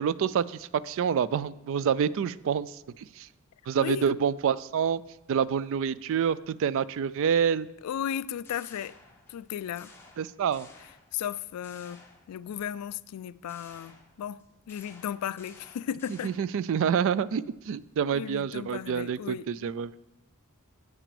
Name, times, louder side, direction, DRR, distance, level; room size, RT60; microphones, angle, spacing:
voice 1, 0.0-3.3 3.7-5.0 5.3-7.7 10.2-10.7 16.2-20.0, right 7 dB, 60° right, 0.3 m, -27 dB
voice 2, 7.8-8.9 9.3-9.9 11.1-12.0 12.3-14.4 14.7-16.3 18.1-19.5, left 9 dB, 85° left, 0.3 m, -35 dB
sound 1, 8.4-9.4 9.8-11.3 11.6-12.7 13.5-16.7, left 3 dB, 10° left, 1.2 m, -55 dB
7.9 x 6.0 x 6.8 m
head